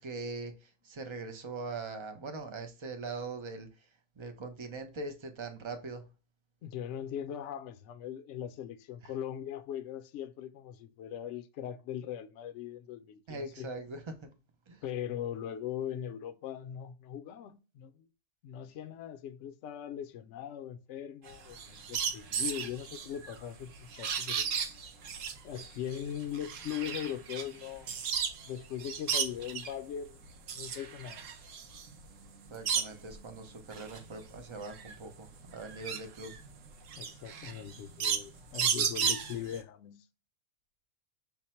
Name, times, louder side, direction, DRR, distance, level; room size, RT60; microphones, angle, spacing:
voice 1, 0.0-3.7 4.2-6.0 13.3-14.3 14.7-14.8 32.5-36.4, right 3 dB, 50° right, 0.3 m, -41 dB
voice 2, 6.6-13.7 14.8-18.1 18.4-24.5 25.4-28.0 28.4-31.3 37.0-40.0, left 10 dB, 65° left, 0.8 m, -40 dB
sound 1, 21.3-28.5 28.8-29.8 30.2-33.2 33.6-39.6, right 7 dB, 65° right, 1.0 m, -34 dB
5.7 x 2.1 x 4.2 m
omnidirectional pair, 1.5 m